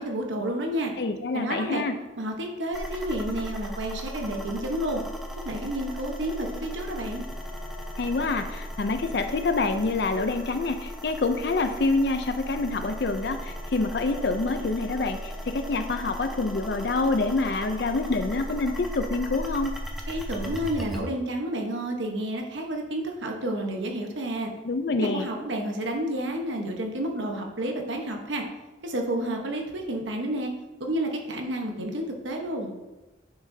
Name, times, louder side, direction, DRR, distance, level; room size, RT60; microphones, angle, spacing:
voice 1, 0.0-0.9 1.3-1.8 2.2-5.0 5.4-7.2 20.1-24.5 25.0-28.4 28.8-30.5 30.8-32.7, right 1 dB, 80° right, 2 dB, 1.1 m, -30 dB
voice 2, 1.0-1.9 8.0-19.7 24.6-25.3, left 3 dB, 60° left, 7 dB, 0.5 m, -26 dB
sound 1, 2.7-21.0, equal, ahead, 0.8 m, -37 dB
9.5 x 6.0 x 2.7 m, 1.1 s
head